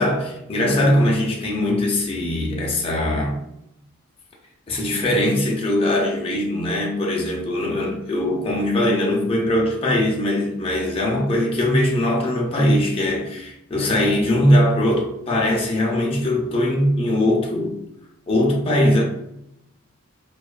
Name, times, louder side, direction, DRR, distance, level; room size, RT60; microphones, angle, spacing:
voice 1, 0.0-3.4 4.7-17.8 18.3-19.0, left 1 dB, 25° left, 0.5 m, -21 dB
2.6 x 2.3 x 2.2 m
head